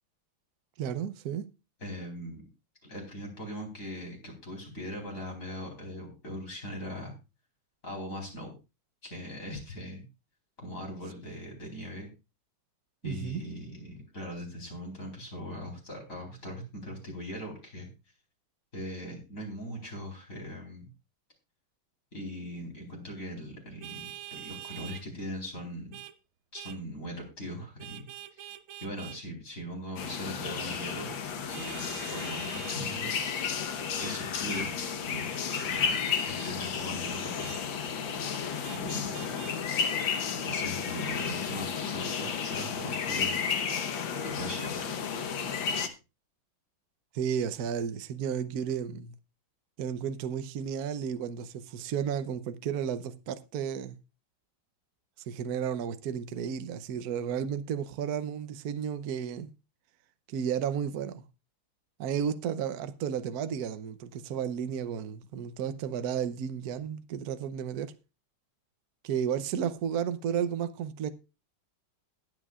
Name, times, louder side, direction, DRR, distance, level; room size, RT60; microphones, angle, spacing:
voice 1, 0.8-1.5 13.0-13.4 47.1-49.2 49.8-54.0 55.3-59.5 60.3-61.2 62.0-67.9 69.0-71.1, right 8 dB, 60° right, 1.1 m, -33 dB
voice 2, 1.8-2.5 2.9-7.1 7.8-8.5 9.0-10.0 10.6-12.1 13.0-17.9 18.7-20.9 22.1-25.9 26.5-28.1 28.4-28.5 28.8-31.1 31.5-33.1 34.0-34.7 35.0-35.3 35.6-37.6 38.7-39.6 40.4-43.8 44.2-44.8, equal, 40° left, 4.5 m, -40 dB
Vehicle horn car horn honking, 23.8-25.0 25.9-26.1 26.5-26.8 27.8-29.2 31.5-32.8 34.5-34.7 35.5-35.7 36.4-36.6 37.4-37.6 38.6-39.6, right 13 dB, 85° right, 1.7 m, -44 dB
sound 1, 30.0-45.9, left 6 dB, 75° left, 1.9 m, -32 dB
21.5 x 8.3 x 2.4 m
omnidirectional pair, 2.2 m